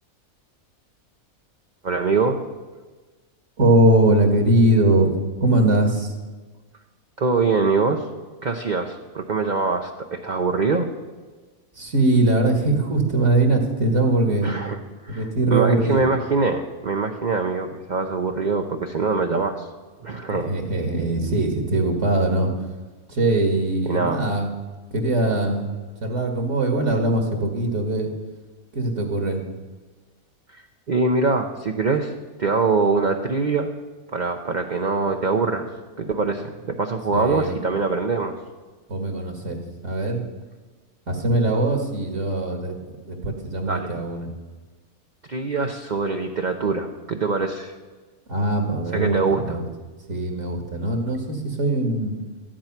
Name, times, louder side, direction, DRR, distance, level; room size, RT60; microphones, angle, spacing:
voice 1, 1.8-2.4 7.2-8.1 8.4-10.9 14.4-19.7 20.0-20.5 23.9-24.2 30.5-30.6 30.9-32.1 32.4-33.7 34.1-35.7 36.0-38.3 43.7-43.9 45.3-47.7 48.9-49.4, right 4 dB, 40° right, 3 dB, 0.8 m, -23 dB
voice 2, 3.6-6.2 11.7-14.5 15.1-16.0 20.3-22.7 23.1-24.5 24.9-28.1 28.7-29.4 37.1-37.6 38.9-40.2 41.1-42.8 43.0-44.3 48.3-49.6 50.1-52.1, right 1 dB, 55° right, 3 dB, 2.1 m, -21 dB
14.0 x 11.5 x 5.9 m, 1.3 s
omnidirectional pair, 1.5 m